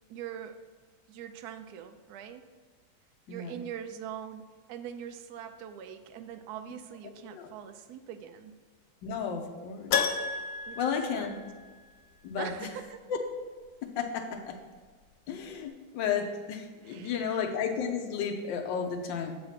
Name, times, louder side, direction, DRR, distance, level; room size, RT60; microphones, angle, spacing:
voice 1, 0.1-0.6 1.1-2.5 3.3-8.6 10.7-10.8 11.1-11.3 12.4-13.0 16.8-17.5, right 9 dB, 80° right, 8 dB, 0.8 m, -42 dB
voice 2, 3.3-3.6 7.0-7.5 9.0-10.0 10.8-11.4 12.2-12.5 13.1-13.2 13.8-14.6 15.3-19.4, left 6 dB, 70° left, 5 dB, 1.4 m, -33 dB
Keyboard (musical), 9.9-12.0 12.2-12.3 15.0-15.1 15.3-15.4, left 6 dB, 90° left, 1.4 m, -32 dB
7.7 x 4.1 x 5.7 m, 1.5 s
omnidirectional pair, 2.2 m